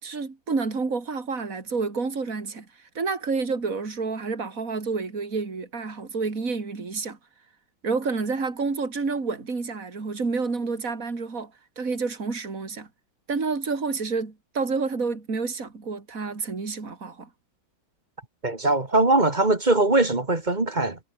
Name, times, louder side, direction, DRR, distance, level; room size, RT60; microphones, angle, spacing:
voice 1, 0.0-7.2 7.8-11.5 11.8-12.9 13.3-17.3, right 4 dB, 40° right, 3.8 m, -29 dB
voice 2, 18.4-21.0, right 2 dB, 20° right, 2.0 m, -21 dB
omnidirectional pair, 2.4 m